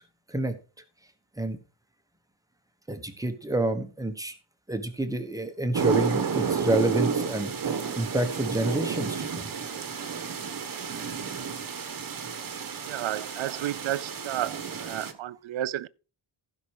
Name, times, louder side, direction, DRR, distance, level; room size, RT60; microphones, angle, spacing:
voice 1, 2.9-4.4 4.7-9.5, right 1 dB, 5° right, 1.3 m, -28 dB
sound 1, 5.7-15.1, right 6 dB, 45° right, 1.4 m, -31 dB
voice 2, 12.9-15.9, right 13 dB, 75° right, 0.7 m, -32 dB
15.0 x 6.1 x 4.8 m
wide cardioid pair, 170°, 47 cm